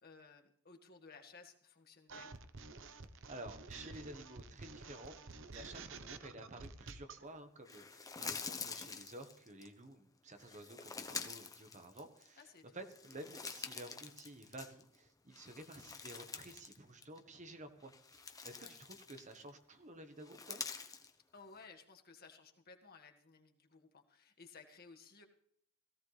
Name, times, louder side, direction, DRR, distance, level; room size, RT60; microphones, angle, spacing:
voice 1, 0.0-2.3 12.4-12.8 18.6-18.8 21.3-25.2, left 4 dB, 45° left, 4 dB, 1.9 m, -58 dB
sound 1, 2.1-7.2, right 4 dB, 55° right, 1.0 m, -50 dB
voice 2, 3.3-5.2 5.5-12.5 12.7-20.6, right 1 dB, 35° right, 7 dB, 1.3 m, -52 dB
sound 2, 7.7-9.7 10.4-12.4 12.8-15.0 15.3-16.8 17.0-17.2 17.8-19.5 20.2-21.1, left 5 dB, 15° left, 1.0 m, -47 dB
17.5 x 16.5 x 3.4 m, 0.66 s
head